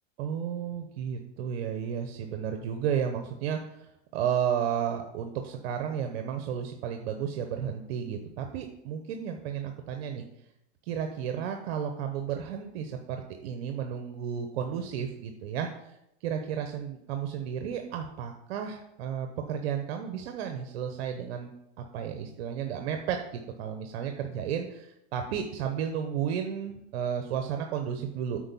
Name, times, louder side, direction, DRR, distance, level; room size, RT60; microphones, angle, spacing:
voice 1, 0.2-10.2 10.8-15.9 16.2-21.5 21.8-23.2 23.6-28.4, right 8 dB, 60° right, 5 dB, 0.9 m, -33 dB
8.7 x 4.5 x 5.4 m, 0.83 s
supercardioid pair, 145°, 34 cm